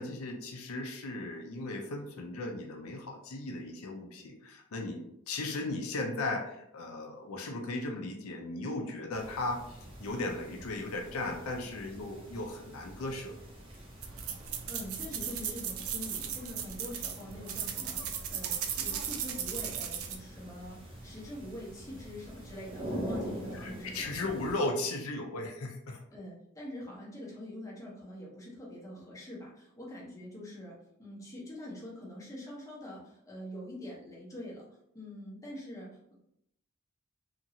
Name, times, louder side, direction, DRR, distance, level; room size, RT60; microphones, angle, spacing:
voice 1, 0.0-13.3 23.5-26.0, left 2 dB, 85° left, 2 dB, 0.5 m, -36 dB
sound 1, 9.1-24.6, equal, 25° right, 0.7 m, -45 dB
sound 2, 14.0-20.2, right 8 dB, 80° right, 0.4 m, -36 dB
voice 2, 14.7-24.1 26.1-34.6 34.9-36.1, left 1 dB, 15° left, -5 dB, 0.8 m, -44 dB
2.9 x 2.6 x 2.7 m, 0.76 s
head